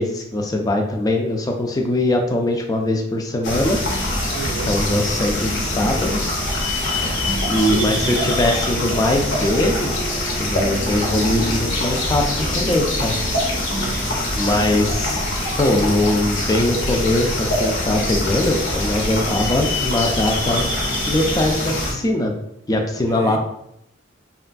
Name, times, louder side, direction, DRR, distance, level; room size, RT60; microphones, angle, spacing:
voice 1, 0.0-3.8 4.6-6.2 7.4-13.1 14.4-15.3 15.6-20.7 21.1-22.3 22.7-23.4, left 1 dB, 20° left, 2 dB, 0.3 m, -21 dB
sound 1, 3.3-14.9, right 2 dB, 15° right, 0.6 m, -36 dB
sound 2, 3.4-21.9, left 1 dB, 80° left, 0.7 m, -24 dB
voice 2, 4.3-4.7 7.6-8.2 13.6-14.4 23.1-23.4, right 5 dB, 85° right, 5 dB, 0.4 m, -31 dB
2.9 x 2.3 x 2.5 m, 0.77 s
head